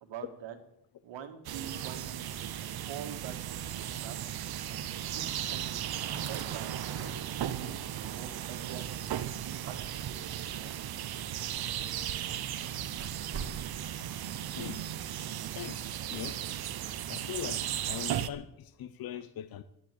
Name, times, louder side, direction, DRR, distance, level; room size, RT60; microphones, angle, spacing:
voice 1, 0.0-0.6 1.0-2.5 2.8-4.1 4.7-6.7 7.5-9.1 9.4-9.8 10.0-10.7, right 8 dB, 75° right, 8 dB, 2.0 m, -46 dB
sound 1, 1.4-18.3, right 11 dB, 55° right, 0.9 m, -36 dB
sound 2, 10.5-13.7, right 5 dB, 30° right, 2.1 m, -49 dB
voice 2, 14.0-14.8 15.1-15.2 15.5-16.4 17.1-19.6, left 11 dB, 50° left, 12 dB, 0.7 m, -42 dB
11.5 x 10.5 x 7.6 m, 0.77 s
cardioid pair, 140°, 45 cm